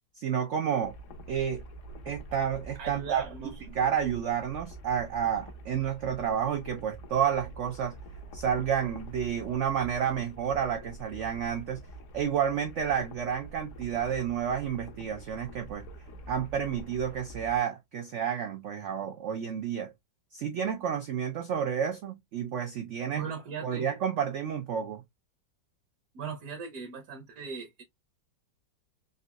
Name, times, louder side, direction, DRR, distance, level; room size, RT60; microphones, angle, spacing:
voice 1, 0.2-0.9 1.3-1.6 2.1-8.0 8.3-11.8 12.1-15.8 16.3-19.9 20.3-23.2 23.6-25.0, right 8 dB, 90° right, 0.6 m, -30 dB
sound 1, 0.8-17.6, right 2 dB, 60° left, 0.8 m, -46 dB
voice 2, 2.8-3.5 23.1-23.9 26.1-27.8, right 5 dB, 65° right, 1.1 m, -39 dB
3.8 x 2.5 x 2.3 m
omnidirectional pair, 1.9 m